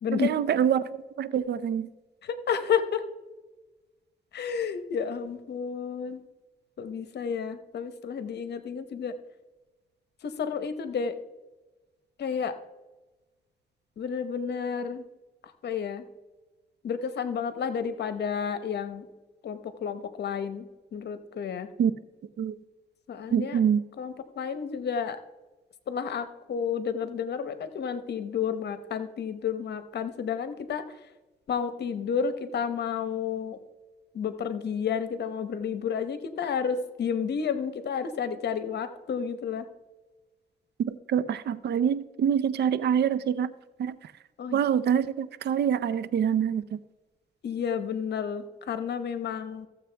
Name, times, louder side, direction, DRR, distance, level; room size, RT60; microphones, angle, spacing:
voice 1, 0.2-1.9 21.8-21.9 22.4-22.5 23.3-23.8 40.9-43.5 43.8-43.9 44.5-46.8, right 8 dB, 70° right, 16 dB, 0.5 m, -25 dB
voice 2, 2.2-3.0 4.3-6.2 6.8-9.2 10.2-11.2 12.2-12.5 14.0-15.1 15.4-16.0 16.8-19.1 19.4-21.7 23.1-23.6 24.0-25.2 25.9-31.0 31.5-33.6 34.1-39.7 44.4-44.6 47.4-49.7, left 7 dB, 70° left, 11 dB, 0.9 m, -31 dB
14.5 x 7.3 x 3.4 m, 1.1 s
cardioid pair, 80°, 18 cm